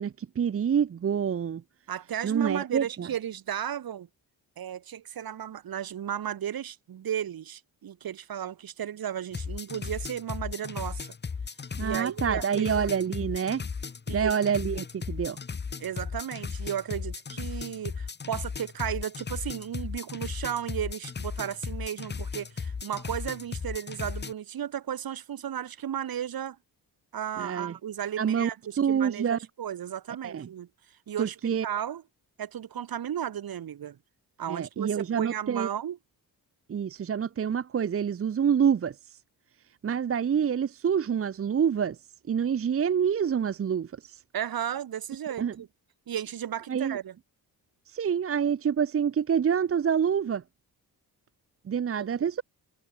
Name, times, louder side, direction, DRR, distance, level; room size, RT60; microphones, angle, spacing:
voice 1, 0.0-1.6 2.2-3.1 11.8-13.6 14.1-15.4 27.4-27.7 28.2-28.5 28.8-29.4 30.2-30.5 31.2-31.6 34.5-35.7 36.7-39.2 39.8-42.0 42.3-44.2 45.4-45.5 46.7-47.0 47.9-50.4 51.7-52.4, right 7 dB, 35° right, 0.9 m, -27 dB
voice 2, 1.9-4.1 4.6-11.1 11.8-12.7 14.1-14.4 15.8-26.6 27.1-32.0 32.4-34.0 34.4-36.0 44.3-45.7 46.1-47.2 52.0-52.3, right 10 dB, 70° right, 5.2 m, -34 dB
sound 1, 9.3-24.3, left 5 dB, 25° left, 1.5 m, -36 dB
wide cardioid pair, 155°, 37 cm